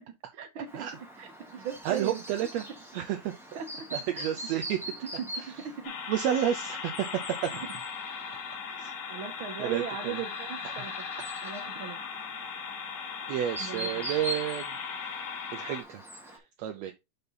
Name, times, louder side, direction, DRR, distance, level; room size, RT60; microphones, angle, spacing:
voice 1, 0.3-0.8 1.2-2.2 3.6-3.7 4.1-4.3 5.0-5.3 5.6-5.9 8.7-8.8 9.1-10.9 11.4-12.0 13.6-14.1, right 8 dB, 50° right, 1.7 m, -38 dB
Chirp tweet, 0.7-16.4, right 1 dB, ahead, 1.6 m, -43 dB
voice 2, 1.9-2.7 2.9-3.6 3.9-4.8 6.1-7.1 7.4-7.5 8.8-8.9 9.6-10.2 10.6-10.8 11.2-11.3 13.3-16.9, right 11 dB, 75° right, 1.8 m, -31 dB
sound 1, 5.8-15.8, left 6 dB, 70° left, 2.7 m, -38 dB
6.8 x 5.3 x 4.0 m
omnidirectional pair, 3.4 m